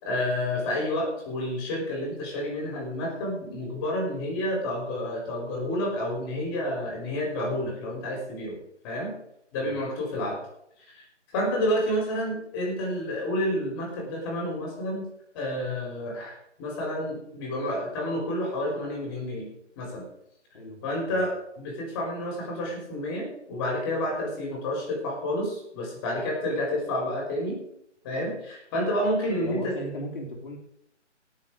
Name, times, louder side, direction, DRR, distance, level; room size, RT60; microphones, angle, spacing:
voice 1, 0.0-8.6 8.8-9.1 9.5-10.4 10.9-11.0 11.3-15.0 15.3-19.5 19.8-20.1 20.8-27.6 28.0-29.7, left 1 dB, 20° left, -2 dB, 4.7 m, -29 dB
voice 2, 29.4-30.6, left 1 dB, 45° left, 1 dB, 3.5 m, -37 dB
17.5 x 7.4 x 5.0 m, 0.76 s
figure-of-eight pair, 160°, 36 cm